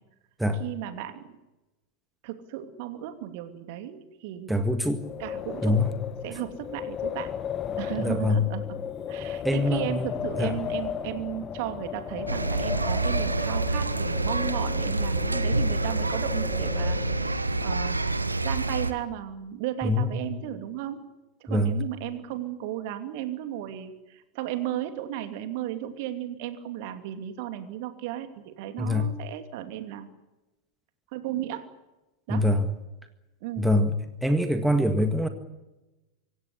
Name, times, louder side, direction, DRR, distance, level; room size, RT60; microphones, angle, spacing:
voice 1, 0.6-1.3 2.2-4.5 5.2-5.8 6.2-7.3 7.8-8.6 9.1-17.0 17.6-18.0 18.4-21.0 21.4-30.1 31.1-31.6 32.3-32.5 33.4-33.7, right 12 dB, 50° right, 8 dB, 2.7 m, -34 dB
voice 2, 4.5-5.0 5.6-5.9 8.0-8.5 9.4-10.1 10.4-10.5 19.8-20.3 21.5-21.8 28.8-29.1 32.3-32.7 33.6-33.9 34.2-35.3, left 1 dB, 5° right, 8 dB, 1.8 m, -24 dB
Wind, 4.9-17.6, left 8 dB, 25° left, 1.6 m, -35 dB
sound 1, 12.3-18.9, right 2 dB, 80° right, 1.3 m, -27 dB
25.5 x 16.5 x 9.9 m, 1.0 s
figure-of-eight pair, 90°, 0 cm